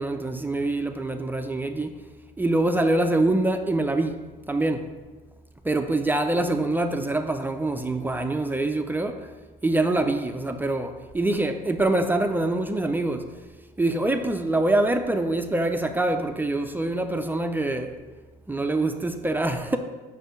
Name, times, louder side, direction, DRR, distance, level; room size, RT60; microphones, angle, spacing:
voice 1, 0.0-2.0 2.4-4.9 5.6-9.3 9.6-13.3 13.8-18.0 18.5-19.8, right 2 dB, 10° right, 0.4 m, -25 dB
6.2 x 4.2 x 5.2 m
cardioid pair, 110°, 17 cm